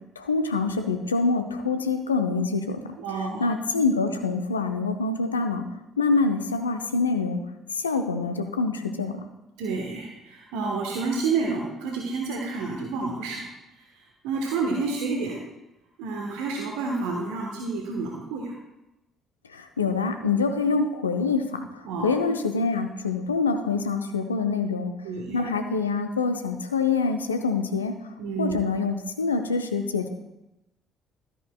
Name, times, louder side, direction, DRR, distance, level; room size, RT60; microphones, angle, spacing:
voice 1, 0.2-2.8 3.4-5.6 6.0-7.4 7.7-9.1 19.5-21.6 22.0-24.9 25.3-27.9 28.4-30.1, left 4 dB, 85° left, 6 dB, 0.6 m, -25 dB
voice 2, 3.0-3.5 9.6-13.4 14.2-15.4 16.0-18.5 21.8-22.1 25.0-25.5 28.2-28.6, right 4 dB, 65° right, 0 dB, 1.2 m, -29 dB
13.0 x 9.0 x 2.3 m, 0.97 s
figure-of-eight pair, 50°, 0 cm